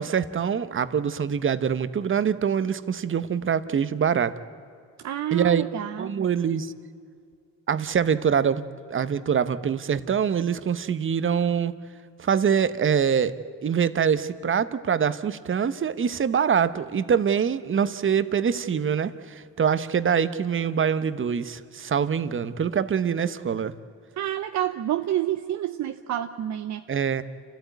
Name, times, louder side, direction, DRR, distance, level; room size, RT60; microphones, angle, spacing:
voice 1, 0.0-4.3 5.3-5.6 6.0-6.7 7.7-11.7 12.2-13.3 13.6-23.7 26.9-27.2, right 7 dB, 40° right, 14 dB, 1.1 m, -24 dB
voice 2, 5.0-6.3 24.2-26.8, right 12 dB, 65° right, 8 dB, 0.8 m, -28 dB
29.0 x 13.5 x 9.3 m, 2.3 s
cardioid pair, 90°, 30 cm